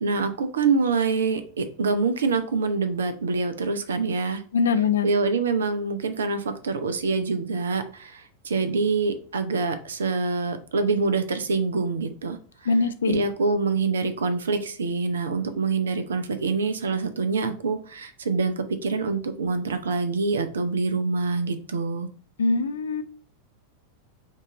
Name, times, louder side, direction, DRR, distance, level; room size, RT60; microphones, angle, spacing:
voice 1, 0.0-4.4 5.0-12.7 13.1-22.1, right 4 dB, 65° right, 10 dB, 0.5 m, -25 dB
voice 2, 4.5-5.1 12.7-13.2 22.4-23.0, left 4 dB, 65° left, 10 dB, 0.4 m, -22 dB
5.4 x 2.5 x 4.0 m, 0.42 s
figure-of-eight pair, 90°, 0 cm